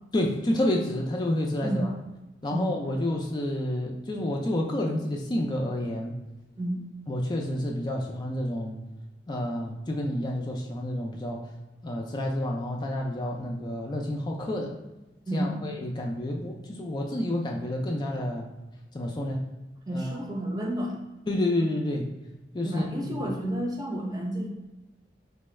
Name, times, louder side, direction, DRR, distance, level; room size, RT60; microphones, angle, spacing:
voice 1, 0.1-1.9 2.4-6.1 7.1-8.8 9.3-11.5 11.8-14.8 15.3-18.5 18.9-19.4 19.9-20.2 21.3-22.1 22.5-22.8 23.2-23.3, left 1 dB, 25° left, 0 dB, 0.3 m, -29 dB
voice 2, 1.6-1.9 2.5-2.7 6.6-6.8 15.3-15.6 19.9-21.0 22.6-24.5, right 1 dB, 20° right, 0 dB, 0.6 m, -30 dB
4.0 x 2.2 x 3.1 m, 1.1 s
head